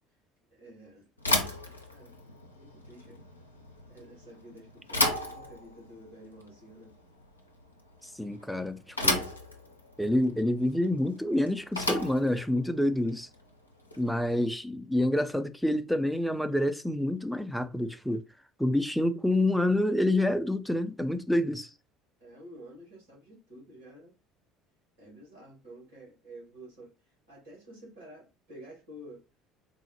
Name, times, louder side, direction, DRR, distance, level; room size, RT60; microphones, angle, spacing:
voice 1, 0.5-1.1 1.9-2.2 2.5-3.2 3.9-6.9 14.2-14.3 22.2-24.1 25.0-26.9 27.3-29.3, right 1 dB, 75° right, 2.0 m, -50 dB
Bicycle / Thump thud, 1.2-14.3, left 1 dB, 85° left, 0.5 m, -34 dB
voice 2, 8.0-9.3 10.0-13.3 14.0-18.2 18.6-21.7, left 1 dB, ahead, 0.4 m, -27 dB
3.9 x 2.0 x 2.9 m
figure-of-eight pair, 60°, 0 cm